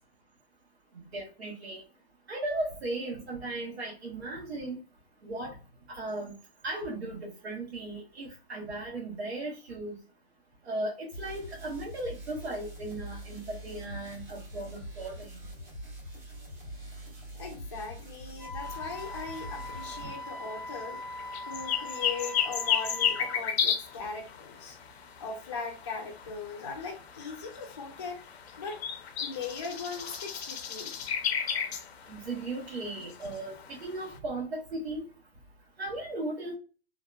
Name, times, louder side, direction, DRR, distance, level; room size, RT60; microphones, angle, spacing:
voice 1, 1.0-1.8 2.3-4.8 5.2-5.6 5.9-6.3 6.6-10.0 10.6-15.3 20.0-20.1 32.1-35.0 35.8-36.5, right 2 dB, 85° right, -2 dB, 0.9 m, -36 dB
sound 1, 11.1-20.0, equal, 25° right, 1.2 m, -44 dB
voice 2, 17.4-21.0 21.5-24.8 25.2-28.2 28.6-28.8 29.2-30.9, left 5 dB, 30° left, -1 dB, 0.4 m, -39 dB
Wind instrument woodwind instrument, 18.4-23.4, left 1 dB, 55° right, 1.0 m, -41 dB
sound 2, 18.6-34.2, left 8 dB, 80° left, 0.6 m, -35 dB
2.8 x 2.0 x 2.2 m, 0.34 s
hypercardioid pair, 170°, 31 cm